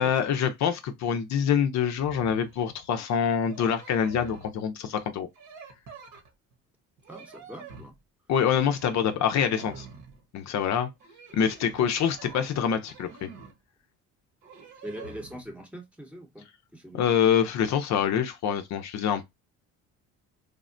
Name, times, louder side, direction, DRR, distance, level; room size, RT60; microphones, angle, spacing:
voice 1, 0.0-5.3 8.3-9.9 10.3-10.9 11.3-13.3 16.9-19.2, left 8 dB, 60° left, 0.5 m, -25 dB
sound 1, 2.0-2.6 3.4-4.6 5.4-6.6 7.0-8.0 8.6-9.0 9.3-10.3 11.0-13.6 14.4-15.5, right 4 dB, 65° right, 1.0 m, -47 dB
voice 2, 7.1-7.9 14.8-16.5 16.7-17.1, equal, 5° right, 0.8 m, -42 dB
3.4 x 2.1 x 2.5 m
cardioid pair, 115°, 32 cm